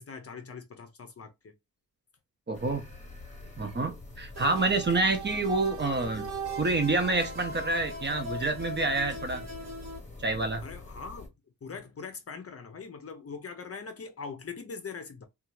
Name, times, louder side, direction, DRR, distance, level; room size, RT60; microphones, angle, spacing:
voice 1, 0.0-1.5 10.6-11.3 11.6-15.2, left 5 dB, 40° left, 0.6 m, -42 dB
sound 1, 2.5-11.3, left 3 dB, 20° left, 0.9 m, -46 dB
voice 2, 2.5-2.8 3.6-6.3 6.6-9.4 10.2-10.6, right 3 dB, 30° right, 0.6 m, -28 dB
sound 2, 4.3-10.0, right 2 dB, 50° right, 1.0 m, -39 dB
2.7 x 2.4 x 3.0 m
wide cardioid pair, 155°, 36 cm